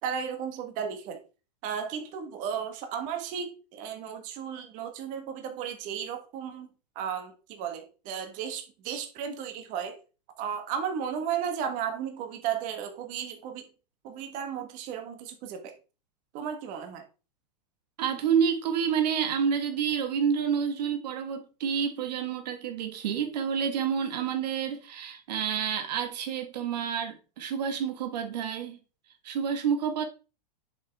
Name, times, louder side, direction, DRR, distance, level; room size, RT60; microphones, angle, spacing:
voice 1, 0.0-1.2 1.6-6.7 6.9-10.0 10.4-13.7 14.0-15.7 16.3-17.0, right 8 dB, 40° right, 1.4 m, -34 dB
voice 2, 18.0-28.8 29.2-30.0, right 7 dB, 75° right, 1.5 m, -29 dB
7.2 x 5.7 x 3.4 m
supercardioid pair, 150°, 21 cm